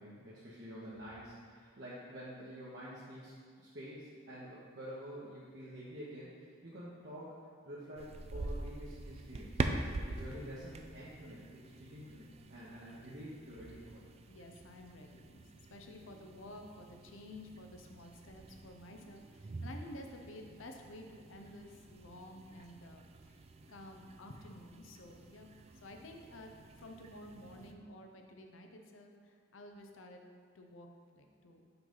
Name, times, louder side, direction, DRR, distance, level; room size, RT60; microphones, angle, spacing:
voice 1, 0.0-7.3 7.6-9.6 10.1-14.0, equal, 60° right, -8 dB, 1.1 m, -48 dB
sound 1, 8.0-27.7, right 2 dB, 30° right, 0.3 m, -45 dB
voice 2, 14.3-15.4 15.7-26.5 26.8-30.2 30.5-30.9 31.1-31.6, left 1 dB, 80° left, 3 dB, 0.7 m, -52 dB
5.7 x 3.9 x 5.6 m, 2.2 s
head